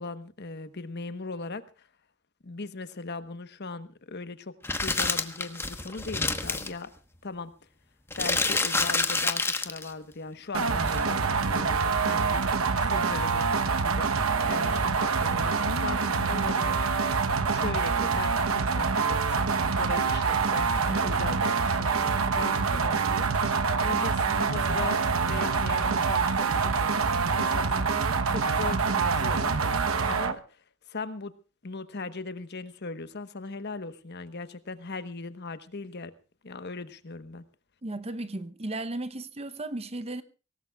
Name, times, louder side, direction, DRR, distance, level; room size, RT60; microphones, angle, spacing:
voice 1, 0.0-1.9 2.4-4.5 4.8-6.9 7.2-7.5 8.2-12.5 12.8-14.1 14.4-17.1 17.5-23.3 23.8-26.9 27.3-29.7 30.1-31.3 31.6-36.1 36.4-37.4, left 3 dB, 55° left, 1.1 m, -39 dB
sound 1, 4.6-6.7 8.1-9.9 10.9-11.0, left 3 dB, 10° left, 1.1 m, -28 dB
sound 2, 10.5-30.3, right 5 dB, 80° right, 1.0 m, -26 dB
voice 2, 37.8-40.2, right 2 dB, 30° right, 0.8 m, -35 dB
23.5 x 18.5 x 2.3 m
head